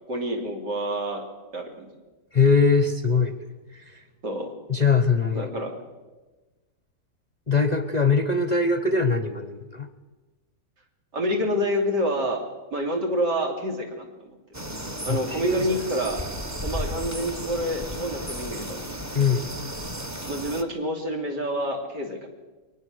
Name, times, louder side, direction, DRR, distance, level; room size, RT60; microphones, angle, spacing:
voice 1, 0.1-1.2 1.5-1.9 4.2-4.5 5.3-5.7 11.1-12.4 12.7-14.4 15.0-16.2 16.6-18.9 20.3-22.3, equal, 90° right, 2 dB, 3.5 m, -28 dB
voice 2, 2.3-3.5 3.7-4.0 4.7-5.5 7.5-9.9 15.1-15.7 19.1-19.5, left 4 dB, 35° left, 10 dB, 0.7 m, -22 dB
sound 1, 14.5-20.6, equal, 10° right, 0.9 m, -34 dB
22.5 x 19.5 x 6.4 m, 1.2 s
omnidirectional pair, 1.8 m